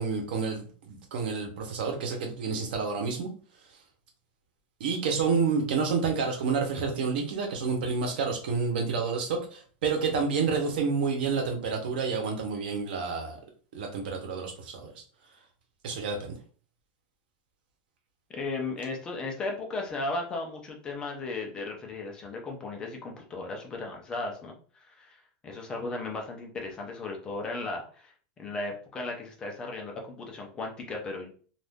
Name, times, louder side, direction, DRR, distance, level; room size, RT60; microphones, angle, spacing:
voice 1, 0.0-3.3 4.8-13.4 13.7-15.0 15.8-16.4, right 5 dB, 80° right, 3 dB, 1.0 m, -29 dB
voice 2, 18.3-25.2 25.4-31.3, left 3 dB, 15° left, 1 dB, 0.5 m, -36 dB
2.6 x 2.5 x 3.5 m, 0.43 s
supercardioid pair, 170°, 5 cm